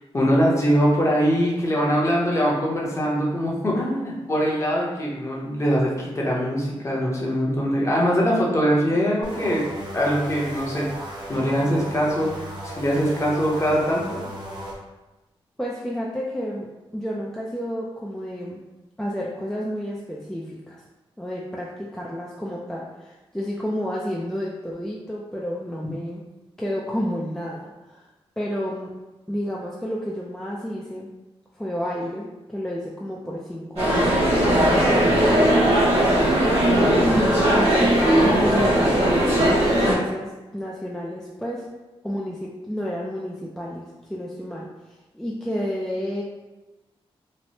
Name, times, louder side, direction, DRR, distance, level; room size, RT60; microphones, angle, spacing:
voice 1, 0.1-9.6 9.9-10.9 11.3-12.3 12.6-14.2 36.7-37.1, equal, 30° left, -4 dB, 0.7 m, -22 dB
sound 1, 9.2-14.8, equal, 45° right, 0.9 m, -36 dB
voice 2, 15.6-16.7 16.9-18.6 19.0-20.8 21.2-26.2 26.6-28.0 28.4-28.9 29.3-31.1 31.6-35.5 37.0-41.7 42.0-44.7 45.1-46.2, equal, 5° left, -4 dB, 0.3 m, -30 dB
sound 2, 33.8-39.9, right 1 dB, 85° right, 1.2 m, -18 dB
3.1 x 2.0 x 2.8 m, 1.1 s
wide cardioid pair, 105°, 10 cm